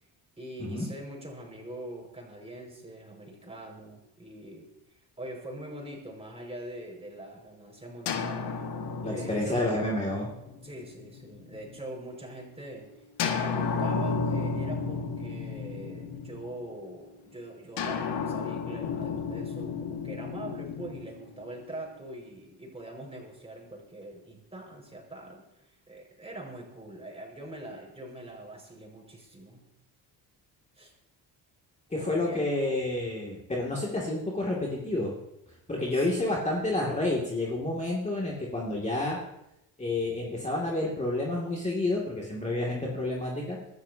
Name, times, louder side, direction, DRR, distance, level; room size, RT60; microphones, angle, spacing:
voice 1, 0.4-4.7 5.2-8.7 9.1-9.7 10.6-12.9 13.4-29.6 30.8-30.9 32.0-32.5 35.9-36.3, right 1 dB, 15° right, 0 dB, 5.5 m, -43 dB
sound 1, 8.1-11.9 13.2-16.8 17.8-21.9, left 5 dB, 80° left, 1.9 m, -33 dB
voice 2, 9.0-10.3 31.9-35.1 35.7-39.2 39.8-43.6, left 2 dB, 15° left, -3 dB, 2.5 m, -29 dB
25.0 x 13.0 x 2.8 m, 0.87 s
cardioid pair, 105°, 40 cm